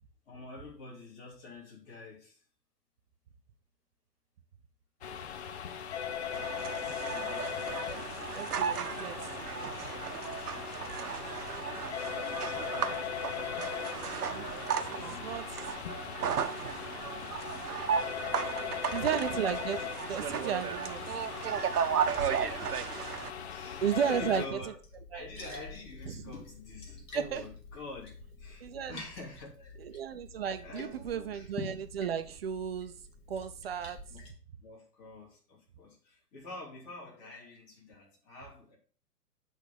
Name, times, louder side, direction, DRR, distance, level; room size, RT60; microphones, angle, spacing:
voice 1, 0.3-2.4 6.9-9.4 12.6-12.8 14.8-15.3 16.2-17.5 18.1-19.2 22.0-23.1 23.5-24.7 25.1-28.1 28.4-29.7 30.6-31.5 34.1-34.2 34.6-38.8, left 2 dB, 30° left, 3.0 m, -48 dB
sound 1, 5.0-24.5, left 8 dB, 45° left, 0.6 m, -39 dB
sound 2, 6.3-23.3, right 7 dB, 70° right, 0.9 m, -35 dB
voice 2, 8.3-9.5 14.2-14.5 14.8-15.8 18.3-21.2 23.8-24.6 25.1-25.3 26.1-26.3 27.1-27.5 28.6-29.0 29.8-32.9 33.3-34.0, right 8 dB, 40° right, 0.6 m, -34 dB
Liquid, 15.3-34.3, left 3 dB, 10° left, 0.9 m, -51 dB
8.0 x 3.6 x 5.2 m
hypercardioid pair, 135°, 48 cm